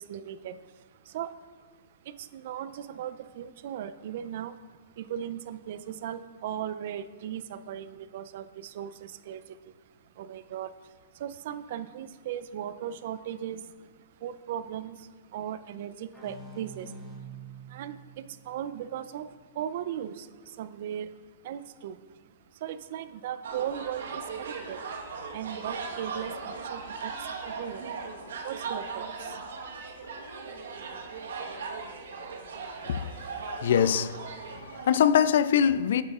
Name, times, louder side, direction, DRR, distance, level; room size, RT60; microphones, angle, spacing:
voice 1, 0.0-1.7 2.0-9.7 10.0-17.3 17.7-24.8 25.3-29.5 30.0-30.1 30.4-31.0, right 10 dB, 55° right, 0.4 m, -38 dB
sound 1, 16.1-19.6, right 4 dB, 5° left, 1.4 m, -47 dB
sound 2, 23.4-35.0, right 4 dB, 80° right, 1.2 m, -38 dB
voice 2, 33.6-34.2 34.7-36.0, left 8 dB, 65° left, 0.3 m, -23 dB
8.8 x 8.7 x 2.4 m
hypercardioid pair, 140°, 0 cm